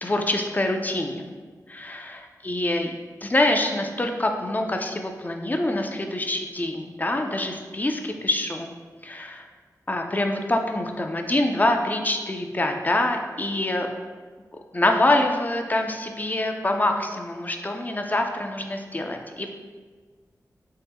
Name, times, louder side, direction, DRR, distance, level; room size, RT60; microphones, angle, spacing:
voice 1, 0.0-1.2 1.7-2.9 3.2-8.7 9.0-9.5 9.9-13.9 14.7-19.5, left 1 dB, 25° left, 4 dB, 0.4 m, -25 dB
4.4 x 2.1 x 3.4 m, 1.5 s
wide cardioid pair, 60°, 7 cm